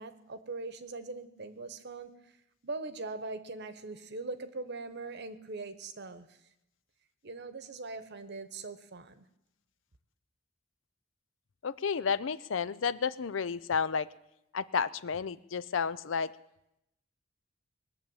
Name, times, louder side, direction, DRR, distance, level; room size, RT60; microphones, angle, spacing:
voice 1, 0.0-2.1 2.6-6.4 7.2-9.2, right 3 dB, 60° right, 12 dB, 1.1 m, -41 dB
voice 2, 11.6-14.1 14.5-16.3, left 6 dB, 70° left, 17 dB, 0.5 m, -31 dB
21.0 x 7.1 x 8.8 m, 0.86 s
head